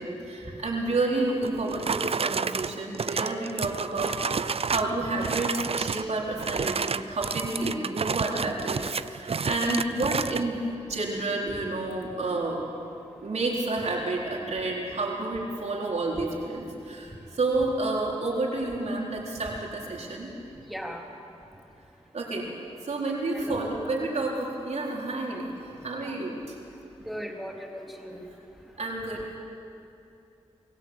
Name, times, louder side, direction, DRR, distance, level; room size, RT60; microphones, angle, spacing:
voice 1, 0.0-12.6 13.2-20.3 22.1-22.5 22.8-26.6 28.8-29.4, right 2 dB, 75° right, -2 dB, 4.3 m, -30 dB
sound 1, 1.4-4.9 5.2-6.1 6.4-10.5, right 5 dB, 60° right, 0.6 m, -30 dB
voice 2, 20.7-21.0 23.3-23.7 26.0-26.1 27.1-28.2, equal, ahead, 0 dB, 3.7 m, -37 dB
25.5 x 16.5 x 8.1 m, 2.7 s
cardioid pair, 50°, 12 cm